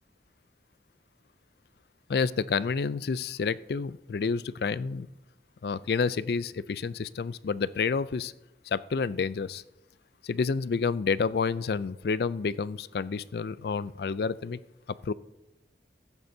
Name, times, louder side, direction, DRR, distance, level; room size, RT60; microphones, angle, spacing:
voice 1, 2.1-5.1 5.6-8.3 8.7-9.6 10.2-14.6 15.0-15.1, left 5 dB, 65° left, 17 dB, 0.4 m, -29 dB
15.5 x 13.0 x 2.7 m, 0.92 s
head